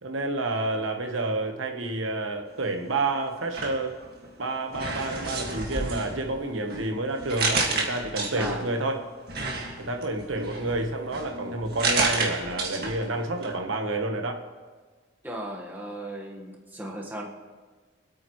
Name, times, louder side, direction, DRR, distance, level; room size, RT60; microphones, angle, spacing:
voice 1, 0.0-4.0 4.4-9.0 9.8-14.4, right 2 dB, 85° right, 4 dB, 1.2 m, -29 dB
sound 1, 3.4-4.3 4.7-8.8 9.3-13.1 13.4-13.5, right 3 dB, 50° right, 1.9 m, -31 dB
voice 2, 15.2-17.2, right 1 dB, 10° right, -2 dB, 1.4 m, -36 dB
25.0 x 8.9 x 3.1 m, 1.4 s
head